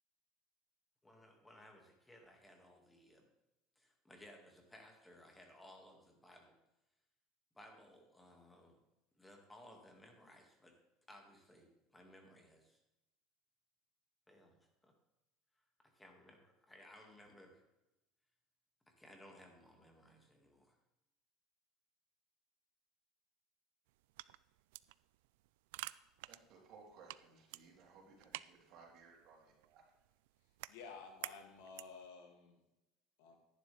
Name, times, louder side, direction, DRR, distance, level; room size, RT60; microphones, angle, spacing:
voice 1, 1.0-3.3 3.8-6.5 7.5-8.8 9.1-10.7 11.1-12.8 14.3-14.9 15.8-17.6 18.9-20.8, left 1 dB, 10° left, 2 dB, 2.1 m, -60 dB
sound 1, 23.9-32.1, right 18 dB, 90° right, 0.3 m, -52 dB
voice 2, 25.8-29.8, right 4 dB, 55° right, -1 dB, 3.7 m, -61 dB
voice 3, 30.7-32.6 33.2-33.4, left 5 dB, 85° left, 2 dB, 2.5 m, -53 dB
12.0 x 11.0 x 3.4 m, 0.94 s
cardioid pair, 130°, 0 cm